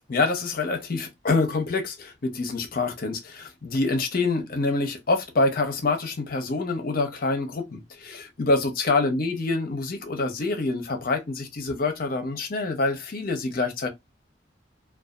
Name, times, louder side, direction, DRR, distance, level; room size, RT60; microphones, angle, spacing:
voice 1, 0.1-13.9, left 3 dB, 55° left, 0.7 m, -26 dB
2.6 x 2.3 x 2.2 m
head